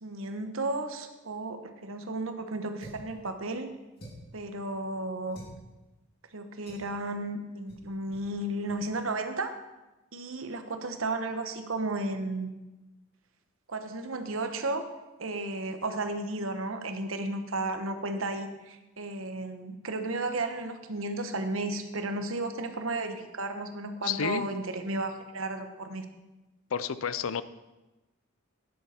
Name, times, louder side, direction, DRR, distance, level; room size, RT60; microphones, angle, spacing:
voice 1, 0.0-3.7 4.3-5.4 6.3-9.5 10.1-12.5 13.7-14.8 15.2-26.0, right 2 dB, 85° right, 7 dB, 1.1 m, -33 dB
sound 1, 2.8-3.1 4.0-4.4 5.3-5.6 6.7-6.9 7.7-7.9 8.1-8.3 8.6-8.8, equal, 50° left, 2.8 m, -47 dB
voice 2, 24.0-24.5 26.7-27.4, left 7 dB, 85° left, 15 dB, 0.5 m, -30 dB
11.0 x 10.0 x 4.4 m, 1.0 s
head